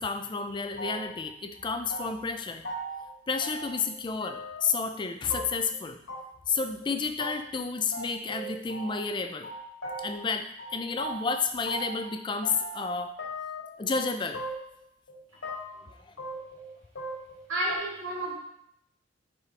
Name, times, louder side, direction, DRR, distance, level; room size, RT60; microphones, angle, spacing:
voice 1, 0.0-2.7 3.3-6.0 6.5-9.5 10.0-13.2 13.8-14.4 16.0-16.1, left 5 dB, 25° left, 8 dB, 0.3 m, -31 dB
sound 1, 0.8-1.3 1.5-2.4 2.6-3.0 3.4-3.9 4.2-4.7 5.3-5.7 6.1-6.2 6.5-6.6 6.8-6.9 7.2-7.3 7.6-7.7 7.9-9.1 9.4-10.3 10.6-12.1 12.4-12.9 13.2-14.0 14.3-14.8 15.1-15.8 16.2-17.4 17.7-17.8, right 1 dB, 85° left, 1.9 m, -38 dB
voice 2, 17.5-18.4, right 1 dB, 90° right, -3 dB, 1.8 m, -31 dB
5.0 x 4.9 x 4.1 m, 0.75 s
head